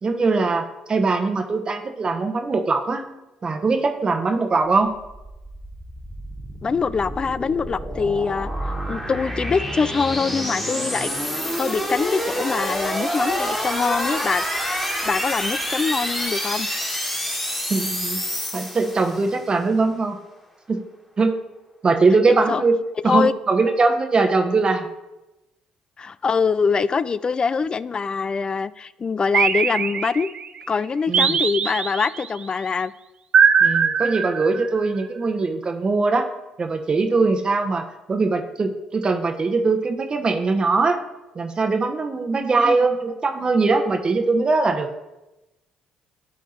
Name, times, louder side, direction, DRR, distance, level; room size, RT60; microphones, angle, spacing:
voice 1, 0.0-3.0 3.4-5.0 17.7-18.2 18.5-20.2 20.7-20.8 21.2-21.3 21.8-22.8 23.0-24.9 31.1-31.4 33.6-36.3 36.6-41.0 41.3-44.9, right 3 dB, 35° right, 5 dB, 1.0 m, -21 dB
sound 1, 4.9-19.4, equal, 5° left, 1.8 m, -27 dB
voice 2, 6.6-16.7 22.3-22.6 23.1-23.3 26.0-30.3 30.7-32.9 42.6-42.8, left 5 dB, 35° left, 18 dB, 0.3 m, -24 dB
sound 2, 29.3-30.5 31.1-32.3 33.3-34.8, right 6 dB, 50° right, 0.5 m, -20 dB
10.5 x 3.6 x 4.3 m, 0.97 s
hypercardioid pair, 55°, 2 cm